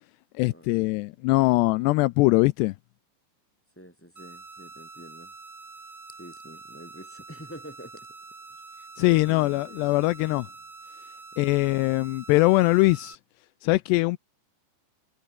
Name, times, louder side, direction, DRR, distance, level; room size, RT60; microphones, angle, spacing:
voice 1, 0.4-2.7 9.0-10.5 11.4-13.2 13.6-14.2, left 21 dB, 80° left, 2.5 m, -22 dB
voice 2, 3.8-5.3 6.2-8.1 9.0-10.0 11.3-11.4, equal, 5° left, 7.4 m, -46 dB
sound 1, 4.2-13.2, right 3 dB, 20° right, 2.4 m, -46 dB
omnidirectional pair, 5.2 m